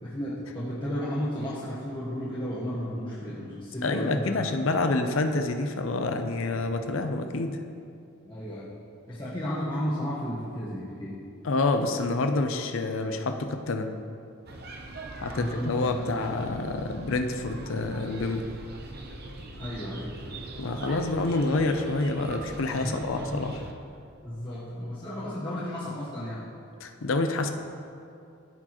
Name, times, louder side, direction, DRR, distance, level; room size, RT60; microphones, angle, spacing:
voice 1, 0.0-4.4 8.3-8.7 9.1-11.2 15.3-16.1 19.6-20.2 22.7-23.4 24.2-26.4, equal, 25° left, -10 dB, 1.1 m, -33 dB
voice 2, 3.8-7.6 11.4-13.9 15.2-18.5 20.6-23.6 26.8-27.5, left 2 dB, 70° left, 6 dB, 0.5 m, -28 dB
sound 1, 14.5-23.7, right 2 dB, 50° right, 0.7 m, -42 dB
13.5 x 4.6 x 3.0 m, 2.6 s
head